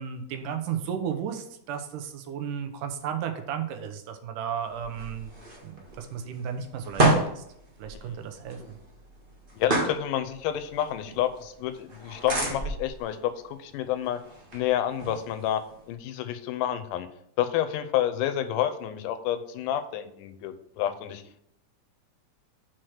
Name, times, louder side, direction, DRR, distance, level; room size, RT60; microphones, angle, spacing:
voice 1, 0.0-5.3 5.6-7.4 7.8-8.8, right 8 dB, 85° right, 6 dB, 2.4 m, -34 dB
sound 1, 4.6-15.9, right 2 dB, 40° right, 0.7 m, -32 dB
voice 2, 9.5-14.2 14.5-17.1 17.4-21.4, left 11 dB, 90° left, 9 dB, 2.2 m, -29 dB
6.2 x 4.4 x 6.4 m, 0.72 s
omnidirectional pair, 3.6 m